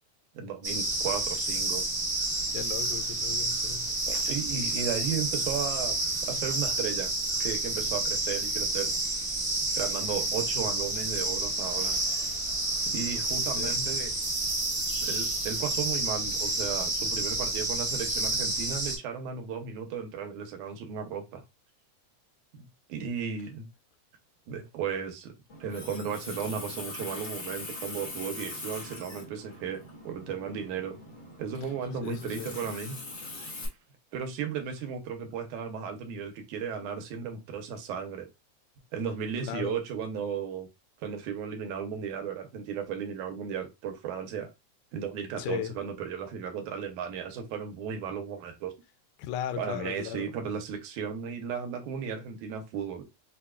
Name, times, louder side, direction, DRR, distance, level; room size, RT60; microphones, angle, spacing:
voice 1, 0.3-1.9 4.1-7.1 7.4-8.9 9.7-12.0 12.8-14.1 15.0-21.4 22.5-23.7 24.5-25.3 25.6-31.0 31.4-33.0 34.1-38.3 38.9-40.7 41.0-44.5 44.9-48.7 49.6-53.0, right 7 dB, 85° right, 2.2 m, -35 dB
sound 1, 0.6-19.0, right 2 dB, 65° right, 0.5 m, -30 dB
voice 2, 2.5-3.9 13.6-13.8 32.0-32.5 39.4-39.8 45.4-45.7 49.2-50.3, left 11 dB, 85° left, 1.9 m, -36 dB
Water tap faucet, 25.5-33.7, left 2 dB, 60° left, 0.7 m, -42 dB
5.5 x 2.3 x 2.2 m
omnidirectional pair, 3.5 m